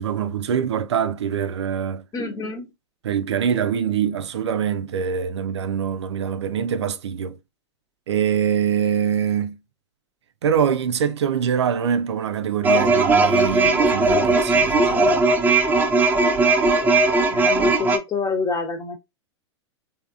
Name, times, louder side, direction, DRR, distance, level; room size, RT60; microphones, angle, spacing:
voice 1, 0.0-2.0 3.0-7.4 8.1-9.6 10.4-15.2, right 8 dB, 75° right, 0.4 m, -24 dB
voice 2, 2.1-2.7 17.3-19.0, left 4 dB, 25° left, 0.9 m, -27 dB
sound 1, 12.6-18.0, right 3 dB, 10° right, 0.5 m, -18 dB
3.4 x 2.8 x 2.4 m
hypercardioid pair, 100°, 14 cm